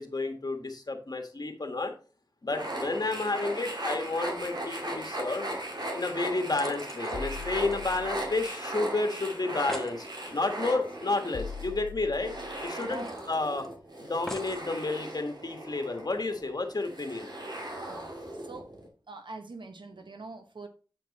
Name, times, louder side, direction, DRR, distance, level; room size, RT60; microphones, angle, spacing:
voice 1, 0.0-1.9 2.4-5.5 5.9-12.3 12.6-13.7 14.0-17.3, left 3 dB, 55° left, 1.4 m, -31 dB
sound 1, 2.5-18.9, right 1 dB, 60° right, 2.3 m, -38 dB
sound 2, 5.5-5.6 5.9-8.5 8.8-8.9 9.2-9.3 9.5-10.0 11.5-11.6 11.9-12.0 12.7-13.7 14.3-14.7 15.4-15.5, left 1 dB, 5° left, 1.0 m, -45 dB
sound 3, 7.1-8.4 10.3-10.4 11.3-12.7 14.5-14.6 15.1-15.2, left 6 dB, 90° left, 0.4 m, -41 dB
voice 2, 12.8-13.2 17.9-18.1 18.4-18.7 19.1-20.7, right 3 dB, 75° right, 0.9 m, -43 dB
7.9 x 4.5 x 4.1 m
wide cardioid pair, 45°, 8 cm